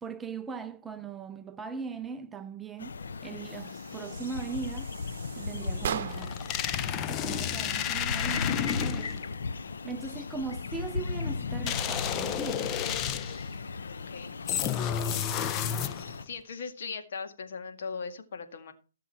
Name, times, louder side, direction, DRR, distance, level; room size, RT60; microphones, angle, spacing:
voice 1, 0.0-4.9 5.3-6.4 6.8-9.1 9.6-12.8, right 5 dB, 10° right, 0.6 m, -39 dB
sound 1, 2.8-16.2, left 4 dB, 80° left, 1.1 m, -37 dB
sound 2, 3.4-6.5, right 8 dB, 50° right, 1.0 m, -39 dB
sound 3, 6.1-9.2 11.7-13.5 14.5-16.2, left 9 dB, 25° left, 0.6 m, -31 dB
voice 2, 13.8-14.3 14.8-15.5 16.2-18.7, left 5 dB, 60° left, 2.0 m, -40 dB
16.5 x 6.8 x 4.4 m
hypercardioid pair, 145°, 0 cm